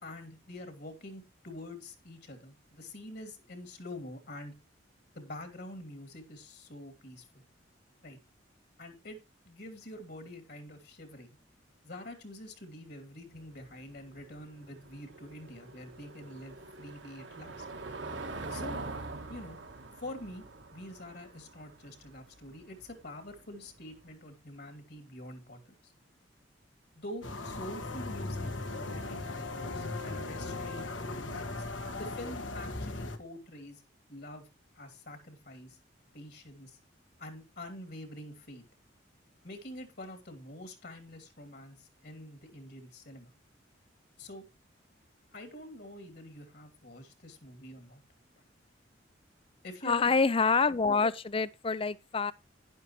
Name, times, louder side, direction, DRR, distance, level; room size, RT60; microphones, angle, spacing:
voice 1, 0.0-4.5 5.1-7.3 8.0-8.2 8.8-9.2 9.4-11.3 11.8-17.7 18.5-18.8 19.3-19.6 20.0-20.4 20.7-25.9 26.9-28.5 28.8-31.7 32.0-33.8 34.1-34.5 34.7-35.8 36.1-36.8 37.2-38.6 39.4-43.3 44.2-44.4 45.3-48.0 49.6-50.1, left 1 dB, 55° left, 2.6 m, -46 dB
Car passing by / Engine, 13.3-24.0, right 3 dB, 75° right, 1.8 m, -44 dB
sound 1, 27.2-33.2, left 2 dB, 85° left, 1.8 m, -38 dB
voice 2, 49.8-52.3, left 4 dB, 30° left, 0.5 m, -27 dB
11.5 x 10.5 x 3.0 m
head